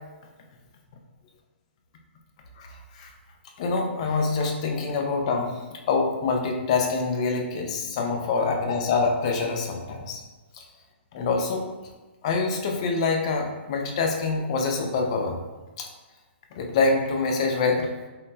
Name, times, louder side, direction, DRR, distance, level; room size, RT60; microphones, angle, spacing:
voice 1, 3.6-10.2 11.1-11.7 12.2-15.4 15.8-15.9 16.6-17.9, left 4 dB, 30° left, 2 dB, 0.4 m, -25 dB
5.6 x 2.1 x 2.6 m, 1.2 s
hypercardioid pair, 165°, 6 cm